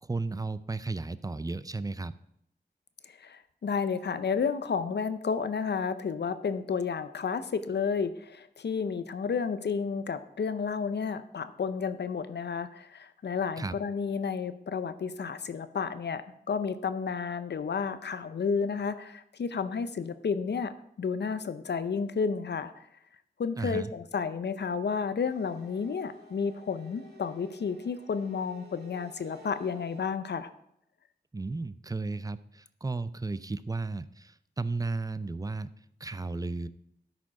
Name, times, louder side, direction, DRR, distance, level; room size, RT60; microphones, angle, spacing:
voice 1, 0.0-2.1 13.6-13.7 23.6-23.9 31.3-35.7 36.0-36.7, right 3 dB, 20° right, 15 dB, 0.4 m, -34 dB
voice 2, 3.0-22.9 23.4-30.5, left 5 dB, 80° left, 12 dB, 0.6 m, -31 dB
sound 1, 25.2-30.1, equal, 70° right, 1.9 m, -53 dB
12.5 x 5.1 x 4.8 m, 0.77 s
wide cardioid pair, 70°, 17 cm